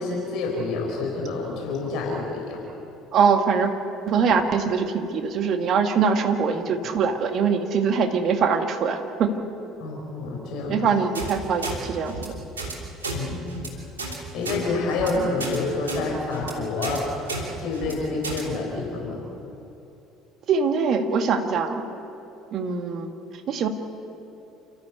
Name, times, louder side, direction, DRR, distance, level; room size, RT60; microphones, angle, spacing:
voice 1, 0.0-2.6 9.8-10.8 13.1-13.5 14.3-17.0 17.6-19.2, left 3 dB, 55° left, -1 dB, 4.6 m, -28 dB
voice 2, 3.1-3.7 4.1-9.3 10.7-12.4 20.5-21.8 22.5-23.1 23.5-23.7, right 5 dB, 50° right, 5 dB, 2.1 m, -23 dB
sound 1, 11.1-11.3 11.6-11.8 12.1-12.3 12.6-12.7 13.0-13.2 13.5-13.7 14.0-14.2 14.4-14.6 14.9-15.1 15.4-15.6 15.9-16.0 16.3-16.5 16.8-17.0 17.3-17.4 17.7-17.9 18.2-18.4, right 3 dB, 80° right, 3.1 m, -31 dB
29.0 x 13.5 x 8.2 m, 2.8 s
figure-of-eight pair, 60°, 0 cm